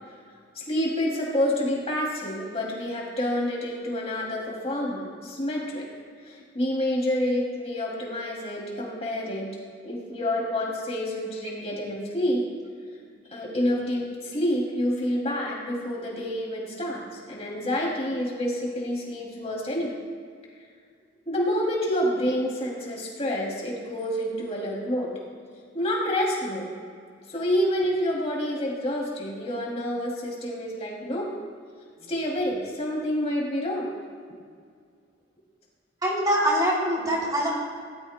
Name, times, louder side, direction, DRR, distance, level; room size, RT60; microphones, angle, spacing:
voice 1, 0.6-5.9 6.2-9.5 9.8-12.4 13.3-19.9 21.3-25.1 25.7-26.7 27.3-31.3 32.1-33.9, left 1 dB, 35° left, -3 dB, 2.6 m, -28 dB
voice 2, 36.0-37.5, equal, 20° right, -4 dB, 2.9 m, -24 dB
17.0 x 12.5 x 2.2 m, 2.2 s
head